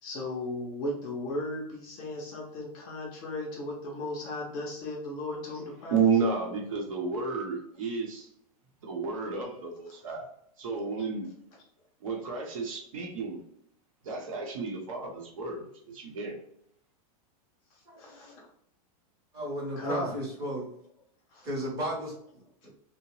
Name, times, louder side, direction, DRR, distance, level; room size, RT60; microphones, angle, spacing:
voice 1, 0.0-6.0 9.9-10.1 11.0-11.1 17.7-18.4 19.8-20.1 21.3-21.5, left 1 dB, 25° left, -2 dB, 0.5 m, -36 dB
voice 2, 5.9-8.3 8.8-10.3 10.6-11.3 12.0-13.4 14.0-16.4, right 5 dB, 65° right, 1 dB, 0.9 m, -31 dB
voice 3, 17.9-18.3 19.3-20.7 21.4-22.7, equal, 20° right, -4 dB, 0.8 m, -35 dB
2.8 x 2.1 x 3.0 m, 0.69 s
supercardioid pair, 180°, 19 cm